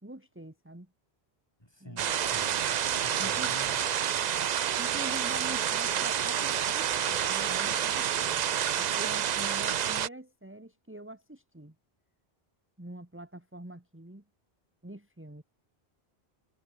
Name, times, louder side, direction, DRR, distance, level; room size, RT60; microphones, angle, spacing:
voice 1, 0.0-0.9 1.8-2.0 3.2-3.8 4.8-8.4 8.7-11.8 12.8-14.2 14.8-15.4, right 1 dB, 10° right, 2.0 m, -45 dB
voice 2, 1.6-3.8, equal, 25° left, 8.0 m, -49 dB
sound 1, 2.0-10.1, right 9 dB, 50° right, 0.6 m, -29 dB
omnidirectional pair, 1.0 m